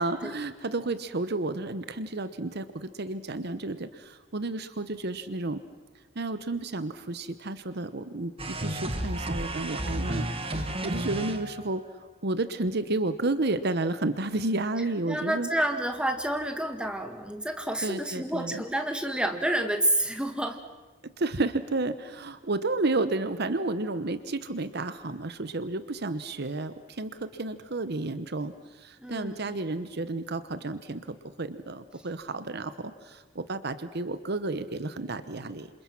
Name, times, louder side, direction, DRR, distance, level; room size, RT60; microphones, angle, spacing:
voice 1, 0.0-5.6 6.2-11.8 12.2-15.5 17.8-18.6 21.2-35.7, right 2 dB, 55° right, 12 dB, 1.0 m, -31 dB
sound 1, 8.4-11.8, right 1 dB, 30° right, 1.6 m, -32 dB
voice 2, 15.1-20.6 29.0-29.4, right 1 dB, 5° right, 5 dB, 1.8 m, -29 dB
28.0 x 27.0 x 6.1 m, 1.2 s
head